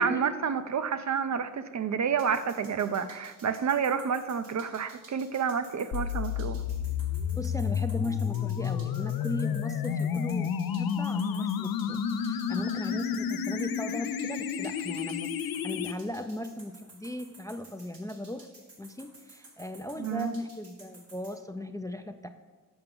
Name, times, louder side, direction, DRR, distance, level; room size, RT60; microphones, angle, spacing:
voice 1, 0.0-6.6 20.0-20.3, right 6 dB, 55° right, 10 dB, 0.5 m, -29 dB
sound 1, 2.2-21.3, right 2 dB, 85° right, 2.2 m, -53 dB
sound 2, 5.9-15.9, left 8 dB, 90° left, 0.5 m, -31 dB
voice 2, 7.4-18.5 18.8-22.3, left 1 dB, 10° left, 8 dB, 0.3 m, -37 dB
7.1 x 5.7 x 5.3 m, 1.3 s
cardioid pair, 75°, 34 cm